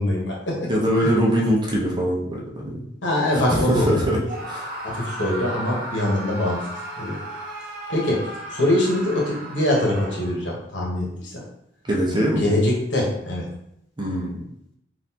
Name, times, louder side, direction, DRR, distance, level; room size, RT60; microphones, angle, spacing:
voice 1, 0.0-0.7 1.0-1.5 3.0-4.0 4.8-6.6 7.0-7.2 7.9-11.4 12.1-13.5, left 1 dB, 75° left, -3 dB, 1.1 m, -23 dB
voice 2, 0.7-2.8 3.5-4.2 4.5-4.7 11.8-12.4 14.0-14.4, equal, 25° right, -2 dB, 0.7 m, -22 dB
Screaming, 4.2-10.5, right 1 dB, 60° right, 0.9 m, -35 dB
4.0 x 2.5 x 2.8 m, 0.78 s
head